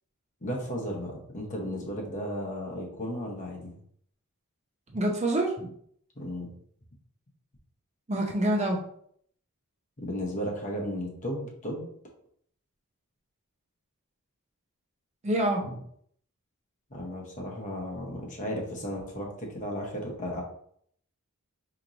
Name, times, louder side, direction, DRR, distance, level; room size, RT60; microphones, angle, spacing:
voice 1, 0.4-3.7 6.2-6.5 10.0-11.9 16.9-20.4, equal, 35° left, -1 dB, 1.0 m, -34 dB
voice 2, 4.9-5.7 8.1-8.8 15.2-15.8, right 1 dB, 30° right, 1 dB, 0.6 m, -26 dB
4.3 x 3.0 x 2.6 m, 0.64 s
head